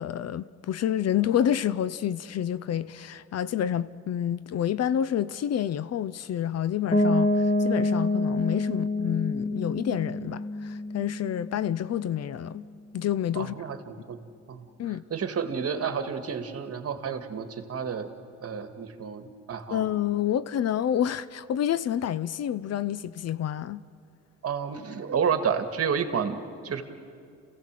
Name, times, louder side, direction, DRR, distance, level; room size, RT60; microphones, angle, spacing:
voice 1, 0.0-12.6 12.9-13.6 14.8-15.0 19.7-23.8, left 10 dB, 55° left, 0.6 m, -28 dB
Piano, 6.9-12.6, left 2 dB, 20° left, 2.0 m, -27 dB
voice 2, 13.4-14.2 14.5-14.7 15.1-18.1 18.4-19.9 24.4-26.8, right 6 dB, 50° right, 1.9 m, -30 dB
28.0 x 16.5 x 7.6 m
cardioid pair, 90°, 30 cm